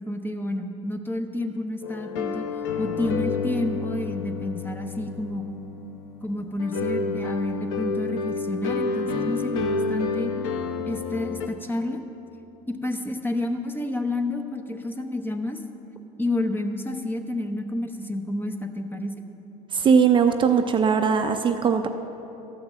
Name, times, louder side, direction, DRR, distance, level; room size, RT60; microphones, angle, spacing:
voice 1, 0.0-2.5 2.8-5.6 6.2-10.3 10.9-12.0 12.7-15.6 16.2-19.1, left 1 dB, 15° left, 5 dB, 0.9 m, -30 dB
sound 1, 1.8-11.5, left 4 dB, 85° left, 0.8 m, -29 dB
voice 2, 19.7-21.9, right 6 dB, 30° right, 6 dB, 0.6 m, -20 dB
12.5 x 6.0 x 7.5 m, 2.9 s
supercardioid pair, 100°, 16 cm